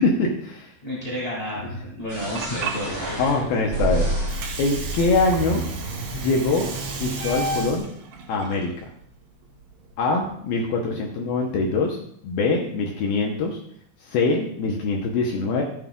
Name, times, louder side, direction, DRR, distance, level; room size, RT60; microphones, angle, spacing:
voice 1, 0.0-0.7 3.2-4.0 4.6-5.6 6.1-6.7 6.9-7.9 8.3-8.7 10.0-12.0 12.2-13.6 14.1-15.6, left 3 dB, 75° left, 0 dB, 2.3 m, -23 dB
voice 2, 0.8-3.5, equal, 20° left, -7 dB, 0.9 m, -31 dB
Water, 2.0-9.9, right 5 dB, 70° right, 3.8 m, -37 dB
sound 1, 2.1-7.8, right 2 dB, 25° right, 3.8 m, -29 dB
14.5 x 8.7 x 2.4 m, 0.66 s
omnidirectional pair, 5.3 m